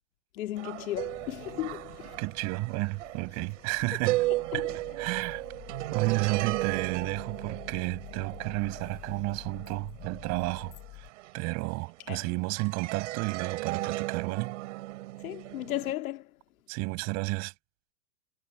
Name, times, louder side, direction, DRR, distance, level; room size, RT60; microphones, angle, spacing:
voice 1, 0.3-2.2 4.5-4.7 12.1-12.2 15.2-16.3, left 14 dB, 65° left, 2.0 m, -35 dB
sound 1, 0.6-12.2 12.6-15.9, right 18 dB, 55° right, 7.7 m, -35 dB
sound 2, 0.9-11.1, left 19 dB, 30° left, 6.5 m, -49 dB
voice 2, 2.2-4.2 4.5-4.7 5.0-5.4 5.9-11.1 11.3-14.5 16.7-17.5, right 26 dB, 35° right, 7.3 m, -32 dB
hypercardioid pair, 150°, 45 cm